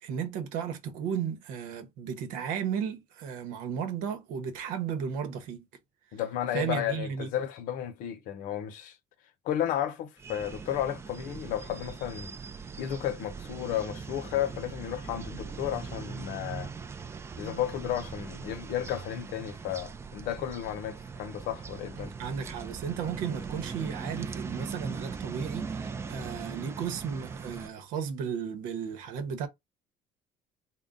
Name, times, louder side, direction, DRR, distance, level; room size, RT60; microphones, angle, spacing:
voice 1, 0.0-5.6 6.5-7.3 22.0-29.5, right 7 dB, 85° right, 0.9 m, -34 dB
voice 2, 6.1-9.0 9.4-12.3 12.8-16.7 17.4-22.1, left 11 dB, 80° left, 0.7 m, -33 dB
sound 1, 10.2-27.7, right 5 dB, 20° right, 0.4 m, -40 dB
3.8 x 2.2 x 3.6 m
cardioid pair, 150°, 14 cm